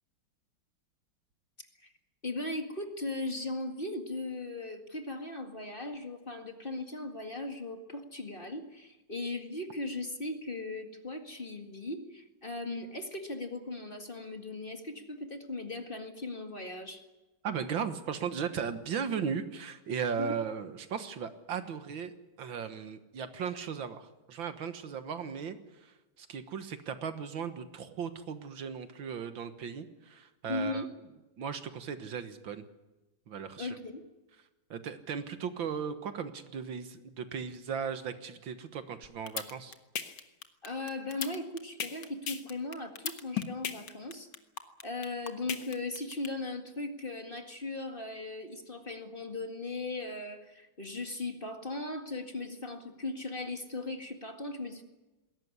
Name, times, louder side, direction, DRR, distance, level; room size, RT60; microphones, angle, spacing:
voice 1, 2.2-17.0 20.2-20.4 30.5-30.9 33.6-34.0 40.6-44.3 44.8-54.8, left 2 dB, 25° left, 5 dB, 2.0 m, -38 dB
voice 2, 17.4-30.8 31.4-32.6 33.3-33.8 34.7-39.8, right 7 dB, 70° right, 10 dB, 2.0 m, -37 dB
sound 1, 39.0-46.3, left 8 dB, 60° left, 2.0 m, -36 dB
21.0 x 17.5 x 9.7 m, 1.1 s
omnidirectional pair, 2.2 m